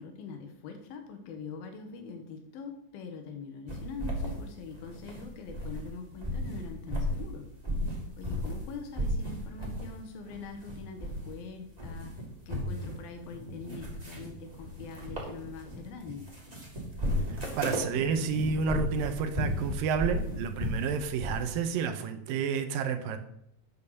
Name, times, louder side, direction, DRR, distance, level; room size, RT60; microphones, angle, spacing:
voice 1, 0.0-7.5 8.2-12.1 12.5-16.3, left 5 dB, 80° left, 5 dB, 3.1 m, -43 dB
sound 1, 3.7-5.9 6.2-8.6 8.9-9.9 10.2-11.4 11.7-21.5, equal, 15° right, 1.8 m, -35 dB
voice 2, 17.3-23.2, right 6 dB, 80° right, 8 dB, 2.4 m, -30 dB
8.7 x 6.9 x 6.6 m, 0.76 s
omnidirectional pair, 4.2 m